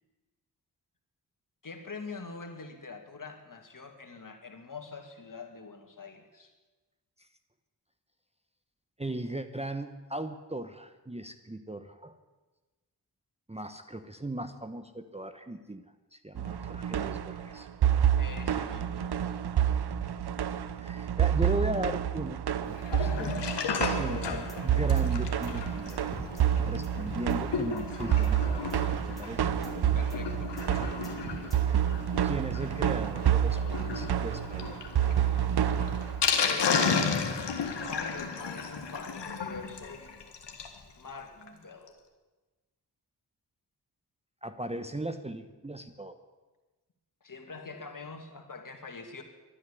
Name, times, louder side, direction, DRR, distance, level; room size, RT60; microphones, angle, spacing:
voice 1, 1.6-6.5 18.1-19.4 29.9-30.5 36.4-36.8 37.6-40.1 41.0-42.0 47.2-49.2, left 4 dB, 45° left, 4 dB, 2.6 m, -44 dB
voice 2, 9.0-12.1 13.5-15.8 16.1-17.7 20.8-23.3 23.6-26.1 26.6-29.5 31.5-31.6 32.2-34.8 44.4-46.2, right 1 dB, 15° right, 9 dB, 1.0 m, -37 dB
sound 1, 16.4-36.2, right 9 dB, 65° right, 0.8 m, -29 dB
Sink (filling or washing), 22.8-40.8 41.1-41.2 41.4-41.5 41.9-42.0, left 5 dB, 75° left, 1.7 m, -34 dB
sound 2, 24.3-31.6, right 1 dB, ahead, 3.8 m, -41 dB
12.0 x 9.9 x 10.0 m, 1.2 s
cardioid pair, 40°, 43 cm